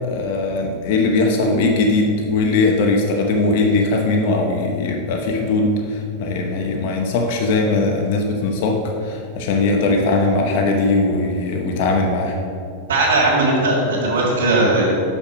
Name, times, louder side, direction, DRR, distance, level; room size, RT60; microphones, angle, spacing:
voice 1, 0.0-12.4, left 3 dB, 60° left, 2 dB, 0.9 m, -19 dB
voice 2, 12.9-15.0, right 2 dB, 85° right, -6 dB, 2.0 m, -18 dB
6.4 x 5.9 x 5.1 m, 2.4 s
hypercardioid pair, 125°, 0 cm